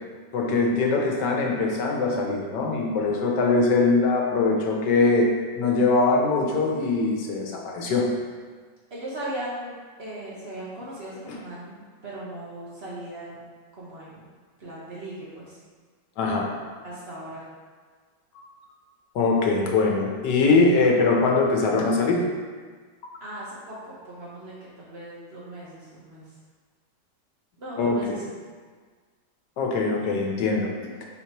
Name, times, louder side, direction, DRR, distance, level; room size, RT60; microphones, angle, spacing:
voice 1, 0.3-5.3 5.6-8.1 11.3-11.4 16.2-16.5 19.1-22.2 27.8-28.2 29.6-30.7, left 3 dB, 90° left, 0 dB, 1.4 m, -22 dB
voice 2, 8.9-9.7 10.0-13.4 13.8-14.2 14.6-15.5 16.8-17.4 23.2-26.2 27.6-28.2, right 1 dB, 50° right, -7 dB, 0.9 m, -38 dB
4.1 x 2.9 x 4.5 m, 1.5 s
omnidirectional pair, 1.8 m